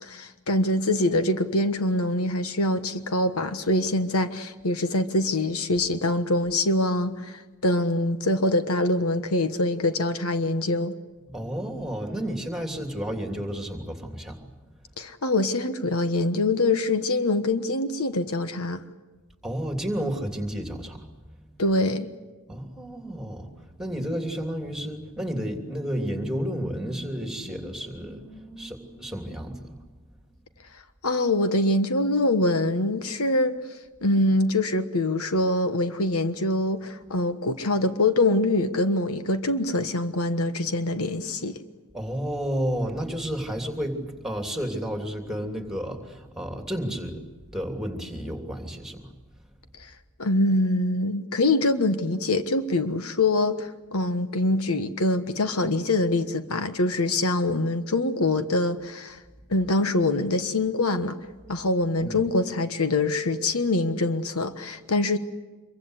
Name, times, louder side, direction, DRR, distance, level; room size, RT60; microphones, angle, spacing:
voice 1, 0.0-10.9 15.0-18.8 21.6-22.1 31.0-41.6 49.8-49.9 50.2-59.2 59.5-61.2 61.5-65.2, left 2 dB, 75° left, 9 dB, 1.3 m, -24 dB
voice 2, 11.3-14.4 19.4-21.2 22.5-29.8 41.9-47.2 47.5-49.1 62.0-62.2, equal, ahead, 4 dB, 3.1 m, -31 dB
26.0 x 23.5 x 8.2 m, 1.2 s
head